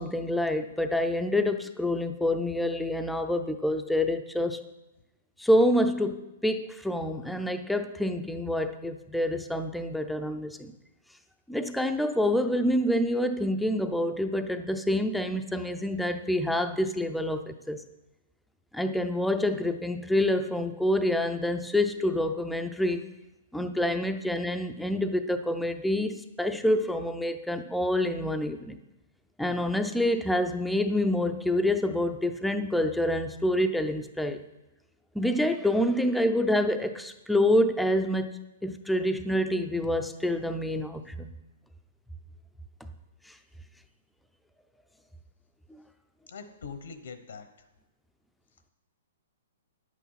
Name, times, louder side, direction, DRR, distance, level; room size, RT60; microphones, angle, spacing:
voice 1, 0.0-4.6 5.4-10.7 11.5-17.8 18.7-23.0 23.5-28.8 29.4-34.4 35.1-41.3, left 1 dB, ahead, 8 dB, 0.5 m, -27 dB
voice 2, 46.3-47.5, left 5 dB, 80° left, 9 dB, 1.0 m, -42 dB
10.0 x 8.3 x 5.7 m, 1.0 s
hypercardioid pair, 165°, 0 cm